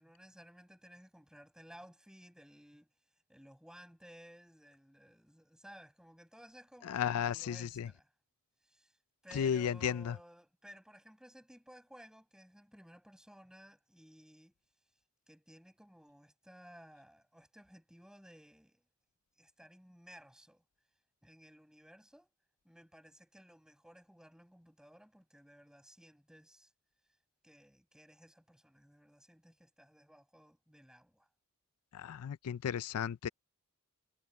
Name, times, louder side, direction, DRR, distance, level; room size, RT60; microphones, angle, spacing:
voice 1, 0.0-2.9 3.3-8.1 8.6-8.9 9.2-14.5 15.3-18.8 19.4-20.6 21.2-22.3 22.6-26.7 27.4-31.3, equal, 5° right, 7.2 m, -57 dB
voice 2, 6.9-7.9 9.3-10.1 31.9-33.3, left 8 dB, 90° left, 0.4 m, -34 dB
head